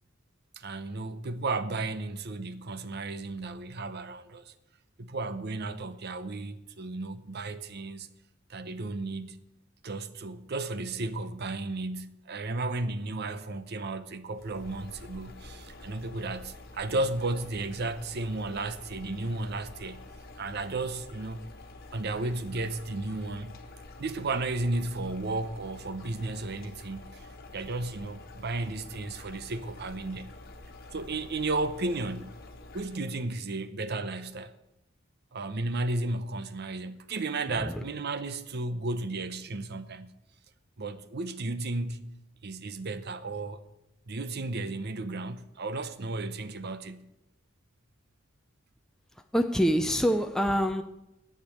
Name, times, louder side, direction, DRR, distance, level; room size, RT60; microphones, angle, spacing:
voice 1, 0.6-4.5 5.0-8.1 8.5-9.4 9.8-20.0 20.4-21.5 21.9-23.5 24.0-27.3 27.5-30.3 30.9-32.3 32.7-34.5 35.3-40.1 40.8-42.1 42.4-43.6 44.1-47.1, right 2 dB, 50° right, 0.7 m, -34 dB
sound 1, 14.3-33.3, left 2 dB, 50° left, 1.4 m, -48 dB
voice 2, 49.3-50.8, equal, 5° left, 0.5 m, -25 dB
10.5 x 6.8 x 9.1 m
head